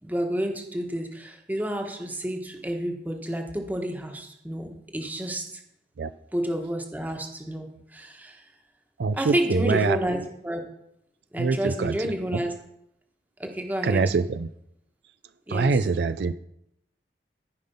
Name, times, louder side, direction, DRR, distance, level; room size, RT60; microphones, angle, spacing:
voice 1, 0.0-5.6 6.3-7.7 7.9-8.4 9.1-10.2 10.4-10.6 11.3-12.5 13.4-14.1 15.5-15.8, equal, 10° right, 3 dB, 1.3 m, -30 dB
voice 2, 9.0-10.0 11.4-12.4 13.8-14.5 15.5-16.3, right 4 dB, 70° right, 13 dB, 0.4 m, -24 dB
13.5 x 5.4 x 5.5 m, 0.80 s
head